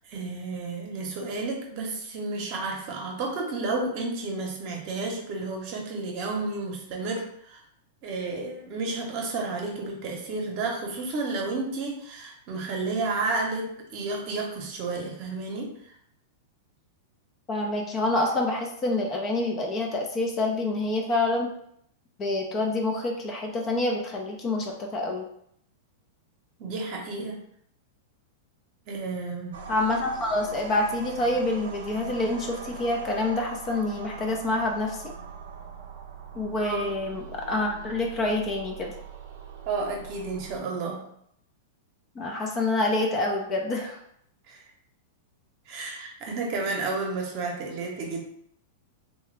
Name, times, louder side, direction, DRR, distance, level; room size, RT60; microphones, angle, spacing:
voice 1, 0.1-7.6 8.0-15.7 26.6-27.4 28.9-29.6 36.6-36.9 39.7-41.0 44.5-44.6 45.7-48.2, right 3 dB, 50° right, 0 dB, 0.8 m, -31 dB
voice 2, 17.5-21.5 22.2-25.2 29.7-35.0 36.4-38.9 42.2-44.0, left 2 dB, 30° left, 1 dB, 0.6 m, -27 dB
sound 1, 29.5-40.6, right 5 dB, 70° right, 0.4 m, -41 dB
2.7 x 2.2 x 3.3 m, 0.71 s
hypercardioid pair, 130°, 0 cm